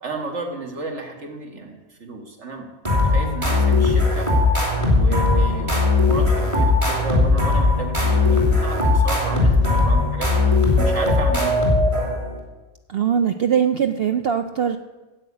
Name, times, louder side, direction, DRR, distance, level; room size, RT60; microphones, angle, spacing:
voice 1, 0.0-1.7 2.0-2.7 3.0-4.3 4.8-10.3 10.7-11.7, right 3 dB, 50° right, 3 dB, 2.1 m, -32 dB
sound 1, 2.8-12.4, left 3 dB, 20° right, 2.9 m, -18 dB
voice 2, 12.9-14.8, right 8 dB, 70° right, 8 dB, 0.5 m, -21 dB
10.0 x 8.2 x 8.4 m, 1.1 s
omnidirectional pair, 1.6 m